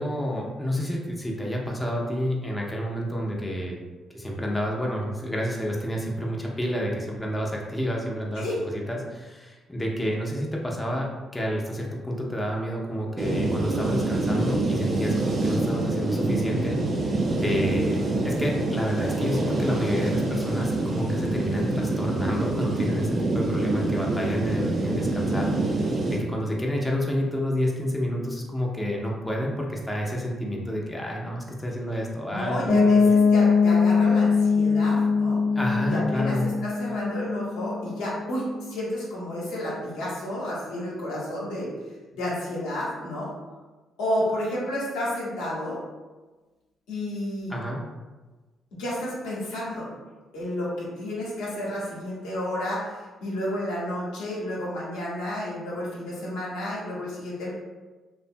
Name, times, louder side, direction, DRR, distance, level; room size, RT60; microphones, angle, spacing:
voice 1, 0.0-3.8 4.1-8.4 8.7-32.7 33.0-33.1 35.6-36.5 47.5-47.8, equal, 15° left, -2 dB, 0.5 m, -29 dB
sound 1, 13.2-26.2, right 2 dB, 50° right, 0.5 m, -26 dB
voice 2, 32.3-35.4 35.8-41.7 42.1-43.3 44.0-45.8 46.9-47.5 48.8-49.9 50.3-52.9 53.2-57.5, left 1 dB, 85° left, -6 dB, 0.8 m, -31 dB
Piano, 32.7-38.4, left 5 dB, 45° left, 0.7 m, -22 dB
2.6 x 2.1 x 2.5 m, 1.3 s
supercardioid pair, 55°, 0 cm